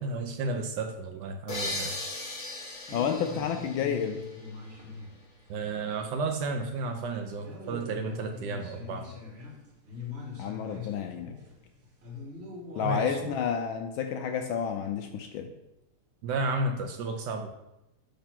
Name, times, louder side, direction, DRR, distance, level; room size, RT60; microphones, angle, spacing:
voice 1, 0.0-1.9 5.5-9.1 12.8-13.2 16.2-17.5, right 3 dB, 75° right, 4 dB, 1.0 m, -32 dB
sound 1, 1.5-5.0, left 2 dB, 45° left, 0.6 m, -38 dB
voice 2, 2.9-4.2 10.4-11.4 12.7-15.5, left 7 dB, 75° left, 6 dB, 1.2 m, -30 dB
sound 2, 2.9-6.4 6.7-6.8 7.4-13.4, left 4 dB, 35° right, 1.2 m, -43 dB
6.7 x 2.9 x 5.7 m, 0.92 s
omnidirectional pair, 2.4 m